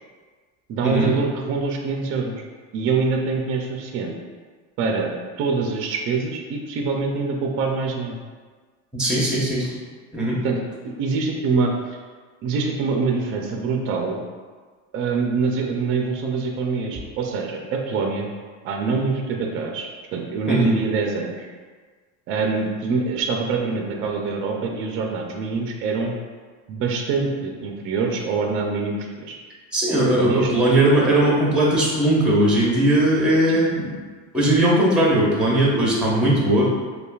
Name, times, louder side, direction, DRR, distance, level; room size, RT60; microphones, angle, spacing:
voice 1, 0.7-2.4 2.7-4.1 4.8-5.1 5.4-8.2 10.4-10.6 10.8-11.7 12.4-14.2 14.9-18.3 18.6-21.5 22.3-26.2 26.7-29.4 30.1-30.5 33.5-33.6, right 4 dB, 35° right, 1 dB, 0.4 m, -24 dB
voice 2, 8.9-9.7 10.1-10.4 20.5-20.7 29.7-33.9 34.3-36.7, right 1 dB, 5° right, -5 dB, 0.9 m, -19 dB
5.4 x 2.3 x 2.3 m, 1.5 s
supercardioid pair, 135°, 36 cm